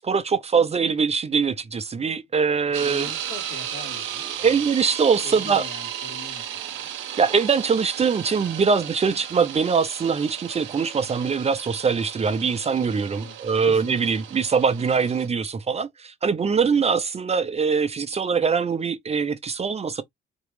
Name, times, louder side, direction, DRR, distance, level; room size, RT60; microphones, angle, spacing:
voice 1, 0.0-3.1 4.4-5.6 7.2-20.0, right 5 dB, 30° right, 0.7 m, -23 dB
sound 1, 2.7-15.3, right 10 dB, 85° right, 0.8 m, -35 dB
voice 2, 2.8-4.6 5.2-6.9 13.2-14.0, left 5 dB, 85° left, 2.0 m, -42 dB
4.4 x 3.0 x 3.2 m
cardioid pair, 90°, 20 cm